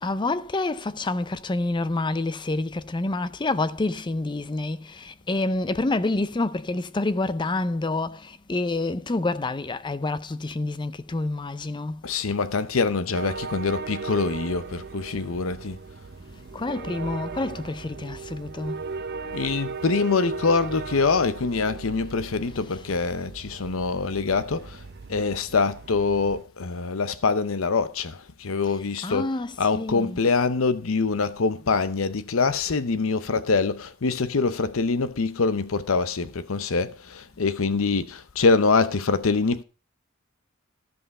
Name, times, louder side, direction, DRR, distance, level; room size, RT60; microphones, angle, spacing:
voice 1, 0.0-12.0 16.3-18.8 22.5-23.1 28.6-30.3, left 2 dB, 25° left, 0.5 m, -28 dB
voice 2, 12.0-15.8 19.3-24.8 25.1-29.3 29.6-39.6, left 4 dB, 80° left, 0.7 m, -24 dB
sound 1, 13.1-26.4, right 4 dB, 50° right, 0.6 m, -37 dB
13.5 x 5.6 x 5.4 m
head